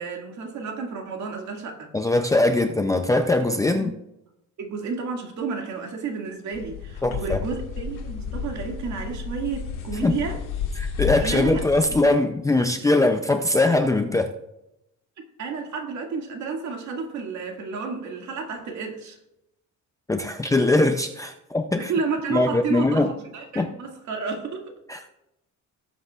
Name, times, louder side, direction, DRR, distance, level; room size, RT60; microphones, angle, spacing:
voice 1, 0.0-1.9 3.7-4.0 4.6-10.4 11.2-11.6 15.4-19.2 21.8-24.7, right 5 dB, 65° right, 2 dB, 2.2 m, -31 dB
voice 2, 1.9-3.9 7.0-7.4 10.0-10.1 10.8-14.3 20.1-21.9 22.3-23.1 23.6-23.7 24.9-25.0, left 2 dB, 10° left, 5 dB, 0.4 m, -21 dB
sound 1, 6.5-12.0, left 7 dB, 75° left, 1.8 m, -31 dB
18.5 x 8.0 x 2.4 m, 0.87 s
cardioid pair, 175°, 31 cm